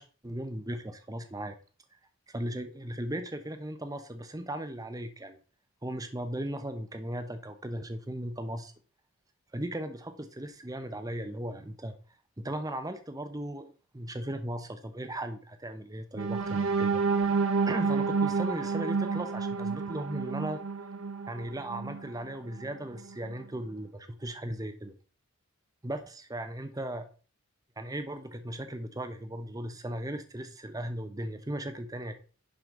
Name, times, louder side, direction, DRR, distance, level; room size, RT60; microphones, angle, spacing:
voice 1, 0.0-1.6 2.3-5.4 5.8-8.7 9.5-12.0 12.4-17.0 17.7-20.6 21.3-24.9 25.8-27.1 27.8-32.1, right 1 dB, 15° right, 8 dB, 0.9 m, -37 dB
sound 1, 16.2-22.1 22.6-22.7 23.1-23.3, right 4 dB, 60° right, 0.9 m, -29 dB
11.0 x 5.1 x 3.9 m, 0.38 s
head